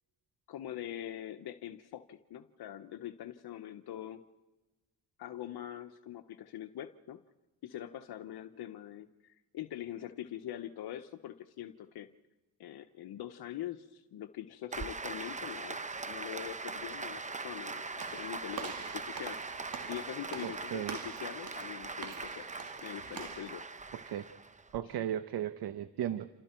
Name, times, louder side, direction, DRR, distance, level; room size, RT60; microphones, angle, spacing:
voice 1, 0.5-4.2 5.2-7.2 7.6-12.1 12.6-15.8 16.1-19.6 19.8-22.5 22.8-23.6 24.8-24.9, left 12 dB, 75° left, 8 dB, 1.1 m, -43 dB
Applause, 14.7-24.8, right 3 dB, 20° right, 0.9 m, -41 dB
Walk footsteps / Slam, 18.0-23.5, right 7 dB, 65° right, 2.8 m, -46 dB
voice 2, 20.4-21.0 23.9-24.3 24.7-26.3, right 11 dB, 80° right, 11 dB, 1.1 m, -36 dB
28.5 x 27.5 x 4.5 m, 1.1 s
cardioid pair, 95°, 38 cm